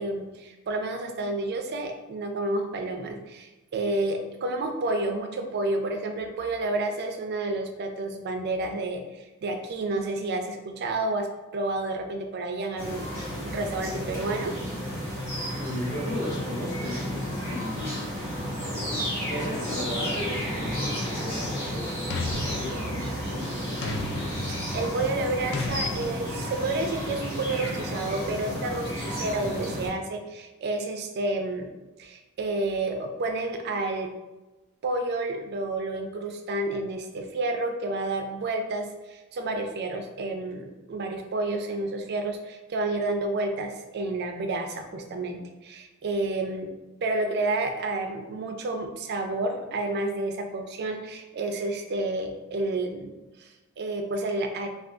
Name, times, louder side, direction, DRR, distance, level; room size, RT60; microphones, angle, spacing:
voice 1, 0.0-13.1 13.3-14.5 24.4-31.7 32.0-34.1 34.8-46.7 47.0-53.1 53.4-54.7, right 2 dB, 45° right, 5 dB, 0.3 m, -30 dB
sound 1, 12.8-29.9, equal, 10° left, 1.1 m, -32 dB
voice 2, 15.5-18.1 18.6-24.0, left 1 dB, 35° left, -6 dB, 1.0 m, -36 dB
sound 2, 21.3-21.7 22.1-23.4 23.8-24.9 25.5-26.6, left 2 dB, 50° left, 0.3 m, -35 dB
3.4 x 2.3 x 2.4 m, 1.1 s
head